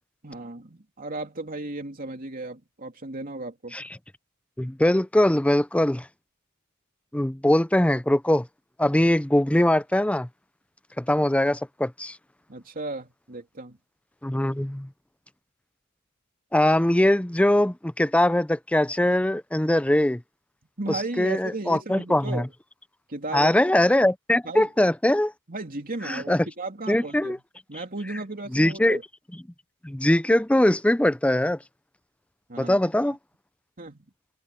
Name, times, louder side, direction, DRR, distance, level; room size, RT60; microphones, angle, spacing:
voice 1, 0.2-3.8 12.5-13.8 20.8-22.5 23.1-23.5 24.4-24.7 25.5-27.4 27.7-29.0 32.5-32.8 33.1-33.2 33.8-34.1, right 2 dB, 40° right, 3.1 m, -35 dB
voice 2, 4.6-6.1 7.1-8.5 8.8-10.3 11.0-12.2 14.2-14.9 16.5-20.2 20.9-22.5 23.3-25.3 26.0-26.5 26.9-27.4 28.5-29.0 29.8-31.6 32.6-33.2, left 1 dB, 5° left, 0.5 m, -22 dB
head